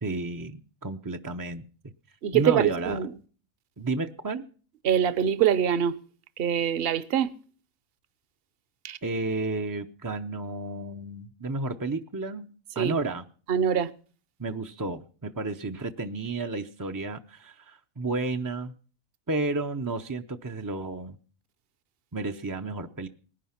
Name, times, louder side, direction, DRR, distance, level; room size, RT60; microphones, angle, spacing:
voice 1, 0.0-1.9 2.3-3.0 3.8-4.4 9.0-12.5 12.8-13.2 14.4-18.7 19.3-21.2 22.1-23.1, right 3 dB, 25° right, 0.4 m, -32 dB
voice 2, 2.2-3.1 4.8-6.0 6.4-7.3 8.8-9.0 12.8-12.9 13.5-13.9, right 9 dB, 50° right, 1.0 m, -24 dB
20.0 x 10.5 x 5.8 m
omnidirectional pair, 1.4 m